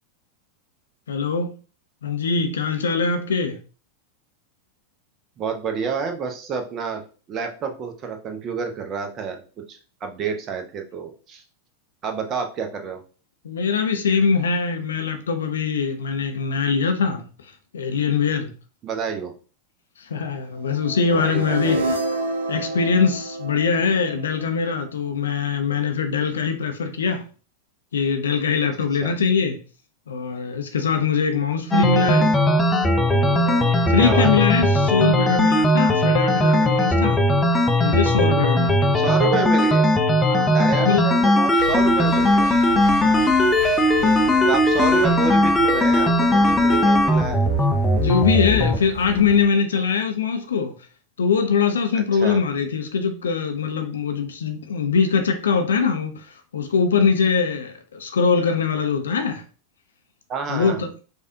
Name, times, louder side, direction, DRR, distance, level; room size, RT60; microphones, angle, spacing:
voice 1, 1.1-1.5 2.0-3.6 13.4-18.5 20.0-21.8 22.5-27.3 27.9-29.6 30.1-32.4 33.1-37.2 37.8-39.0 40.2-41.1 43.0-43.4 44.0-44.5 47.9-50.7 51.2-59.4 60.5-60.9, left 5 dB, 65° left, 0.5 m, -22 dB
voice 2, 5.4-7.0 7.3-11.4 12.0-13.0 18.8-19.3 21.1-21.9 29.0-29.2 34.0-34.3 38.9-39.9 40.5-42.6 44.5-47.5 51.9-52.4 60.3-60.8, right 5 dB, 30° right, 0.8 m, -29 dB
sound 1, 20.8-24.8, right 2 dB, 70° right, 0.7 m, -28 dB
sound 2, 31.7-48.8, left 1 dB, 10° left, 0.5 m, -18 dB
sound 3, 41.6-49.5, equal, 45° right, 1.1 m, -35 dB
5.0 x 2.4 x 2.7 m
figure-of-eight pair, 90°, 0 cm